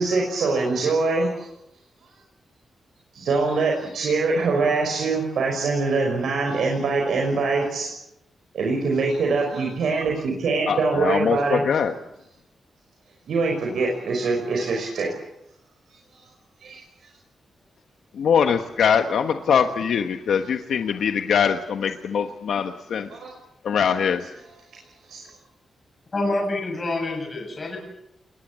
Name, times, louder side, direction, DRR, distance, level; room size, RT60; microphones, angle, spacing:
voice 1, 0.0-1.5 3.1-7.9 8.5-11.7 13.3-15.3 16.6-16.8 23.1-23.4 25.1-25.2, right 3 dB, 75° right, 0 dB, 5.6 m, -23 dB
voice 2, 10.7-11.9 18.2-23.1 23.6-24.2, left 7 dB, 75° left, 7 dB, 1.3 m, -22 dB
voice 3, 26.1-27.8, left 2 dB, 30° left, 0 dB, 7.5 m, -27 dB
28.5 x 21.0 x 7.5 m, 0.79 s
wide cardioid pair, 165°, 0 cm